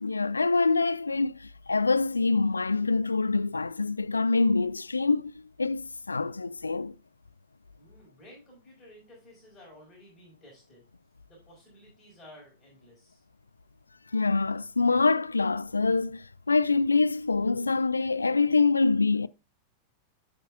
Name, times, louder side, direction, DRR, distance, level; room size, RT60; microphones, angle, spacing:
voice 1, 0.0-5.3 5.6-7.0 14.1-19.3, left 3 dB, 80° left, 0.3 m, -25 dB
voice 2, 7.8-10.9 11.3-13.2, left 1 dB, 15° left, 4.7 m, -54 dB
12.5 x 5.5 x 2.4 m
figure-of-eight pair, 90°, 0 cm